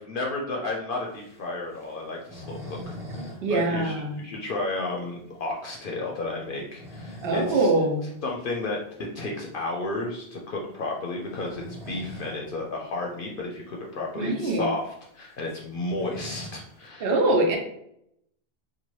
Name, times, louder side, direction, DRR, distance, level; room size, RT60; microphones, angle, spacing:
voice 1, 0.0-7.7 8.2-8.8 9.1-17.1, left 2 dB, 65° left, -1 dB, 0.7 m, -32 dB
sound 1, 1.1-3.4 3.7-3.8 4.2-4.3 4.8-4.9 6.5-7.6 8.0-8.2 9.7-9.9 11.1-12.4 12.8-12.9 13.1-13.2 13.9-14.0 14.3-16.9, left 1 dB, 5° right, 0.6 m, -41 dB
voice 2, 3.4-4.1 7.2-8.0 14.2-14.7 17.0-17.6, right 2 dB, 65° right, 2 dB, 0.8 m, -23 dB
2.9 x 2.2 x 3.0 m, 0.75 s
omnidirectional pair, 1.1 m